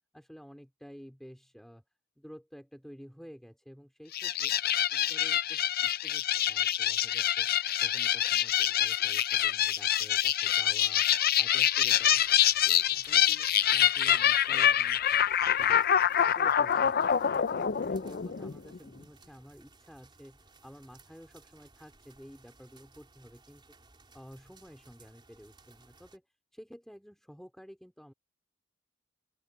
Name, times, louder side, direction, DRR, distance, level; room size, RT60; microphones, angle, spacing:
voice 1, 0.1-1.8 2.2-4.6 4.9-7.5 7.8-11.1 11.4-12.2 12.6-16.0 16.4-23.6 24.1-26.3 26.5-28.1, equal, ahead, 3.9 m, -51 dB
sound 1, 4.1-18.8, left 10 dB, 55° left, 0.5 m, -26 dB
sound 2, 11.7-26.2, right 3 dB, 25° right, 4.1 m, -60 dB
open air
head